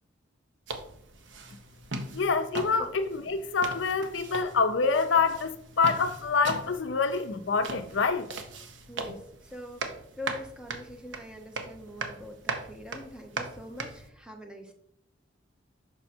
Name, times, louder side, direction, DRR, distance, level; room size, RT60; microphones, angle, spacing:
sound 1, 0.7-14.1, right 3 dB, 65° right, 0.9 m, -40 dB
voice 1, 2.1-8.3, left 4 dB, 70° left, 0.6 m, -26 dB
voice 2, 8.9-14.7, left 1 dB, 5° right, 0.9 m, -44 dB
6.1 x 5.4 x 4.3 m
head